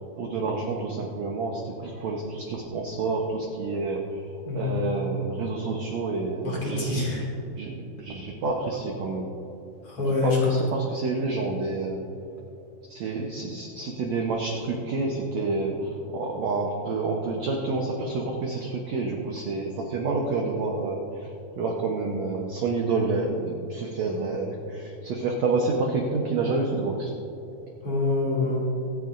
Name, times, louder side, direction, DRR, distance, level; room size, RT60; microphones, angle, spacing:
voice 1, 0.2-7.2 7.6-9.3 10.2-12.0 12.9-21.3 21.6-27.1, right 3 dB, 80° right, 0 dB, 1.5 m, -29 dB
voice 2, 4.4-5.0 6.4-7.2 9.8-10.6 27.8-28.6, left 3 dB, 40° left, -4 dB, 2.9 m, -26 dB
24.5 x 9.3 x 2.6 m, 2.9 s
omnidirectional pair, 4.6 m